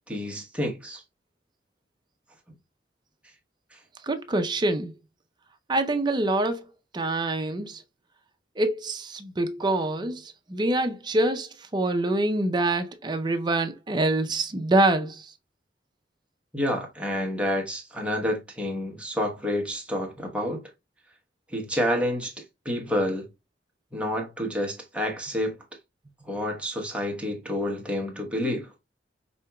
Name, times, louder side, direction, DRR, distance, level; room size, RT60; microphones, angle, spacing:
voice 1, 0.1-1.0 16.5-20.6 21.5-22.3 22.6-23.3 23.9-25.6 26.3-28.7, left 1 dB, 5° right, 0.9 m, -29 dB
voice 2, 4.0-4.9 5.7-6.7 6.9-7.8 8.6-15.3, right 2 dB, 25° right, 0.5 m, -25 dB
5.0 x 2.8 x 2.2 m
head